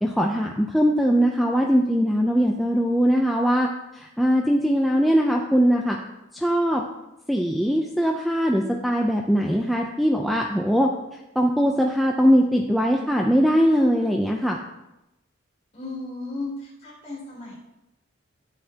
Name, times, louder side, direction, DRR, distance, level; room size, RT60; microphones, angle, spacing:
voice 1, 0.0-6.0 6.3-6.8 7.3-10.9 11.4-14.6, equal, ahead, 0 dB, 0.5 m, -21 dB
voice 2, 15.7-17.7, left 2 dB, 30° left, -5 dB, 3.4 m, -35 dB
12.0 x 8.7 x 2.9 m, 0.94 s
head